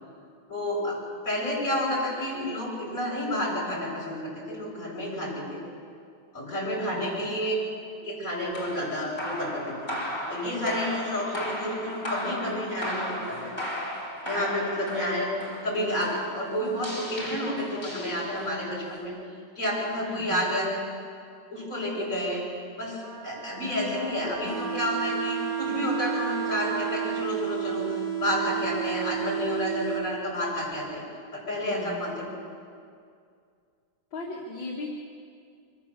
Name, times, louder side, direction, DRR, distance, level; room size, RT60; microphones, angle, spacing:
voice 1, 0.5-1.0 1.2-5.6 6.3-7.6 8.0-9.9 10.3-13.5 14.2-15.3 15.6-19.1 19.6-20.7 21.5-22.4 22.8-31.0 31.3-32.3, left 1 dB, 35° left, -5 dB, 7.6 m, -30 dB
voice 2, 6.8-7.2 20.0-20.5 31.7-32.1 34.1-34.9, left 3 dB, 65° left, -3 dB, 2.6 m, -37 dB
sound 1, 8.5-18.7, equal, 10° left, 2.8 m, -36 dB
Wind instrument woodwind instrument, 23.0-27.3, right 4 dB, 35° right, 0.9 m, -38 dB
sound 2, 24.5-30.4, right 11 dB, 10° right, 1.8 m, -32 dB
24.5 x 14.0 x 7.5 m, 2.3 s
omnidirectional pair, 2.3 m